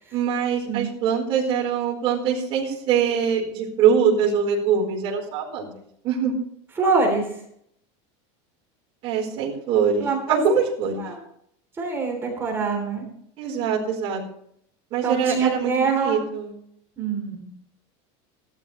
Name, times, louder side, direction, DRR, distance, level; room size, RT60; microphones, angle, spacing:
voice 1, 0.1-6.3 9.0-11.0 13.4-14.2 14.9-16.5, right 7 dB, 35° right, -5 dB, 4.7 m, -23 dB
voice 2, 6.8-7.3 10.0-10.4 11.0-11.2 11.8-13.1 15.0-16.2 17.0-17.5, right 4 dB, 15° right, 0 dB, 3.4 m, -24 dB
17.0 x 12.5 x 3.3 m, 0.69 s
supercardioid pair, 165°, 15 cm